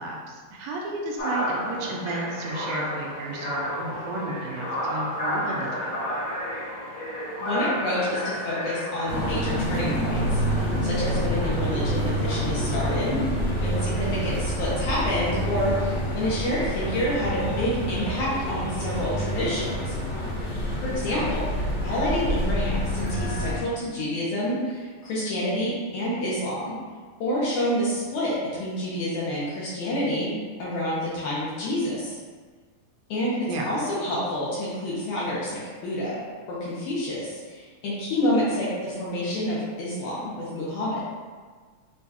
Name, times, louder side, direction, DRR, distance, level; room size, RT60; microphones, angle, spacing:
voice 1, 0.0-6.2 14.1-14.4 21.1-21.4 33.5-33.8, right 2 dB, 80° right, -1 dB, 1.8 m, -33 dB
sound 1, 1.2-12.9, equal, 40° left, 1.4 m, -32 dB
voice 2, 7.4-13.2 13.6-20.0 20.8-21.4 21.8-26.7 27.2-32.2 33.1-33.4 33.6-36.2 36.5-41.0, left 1 dB, 75° left, -7 dB, 2.0 m, -28 dB
sound 2, 9.1-23.6, equal, 60° left, 1.6 m, -27 dB
6.5 x 2.3 x 2.7 m, 1.5 s
omnidirectional pair, 3.8 m